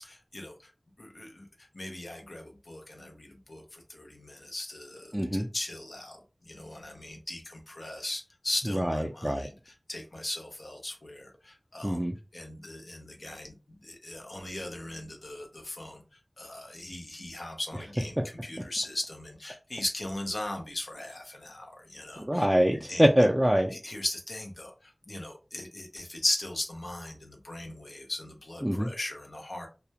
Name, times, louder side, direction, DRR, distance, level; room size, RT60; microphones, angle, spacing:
voice 1, 0.3-0.7 1.0-1.5 1.7-6.2 6.4-12.0 12.3-16.0 16.4-22.5 22.9-23.0 23.7-29.7, left 1 dB, 80° left, 2 dB, 0.5 m, -38 dB
voice 2, 5.1-5.5 8.7-9.5 11.8-12.2 22.3-23.8 28.6-28.9, equal, 10° right, 1 dB, 0.3 m, -24 dB
2.2 x 2.0 x 2.7 m, 0.31 s
wide cardioid pair, 45°, 0 cm